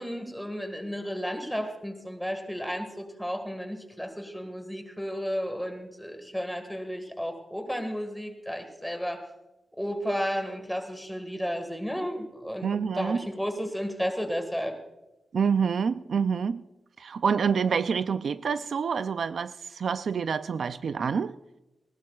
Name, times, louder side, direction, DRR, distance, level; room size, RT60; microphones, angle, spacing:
voice 1, 0.0-9.2 9.8-14.7, equal, ahead, 6 dB, 1.7 m, -33 dB
voice 2, 12.6-13.2 15.3-16.6 17.0-21.3, right 6 dB, 60° right, 12 dB, 0.4 m, -27 dB
19.5 x 18.0 x 2.4 m, 1.0 s
wide cardioid pair, 175°, 0 cm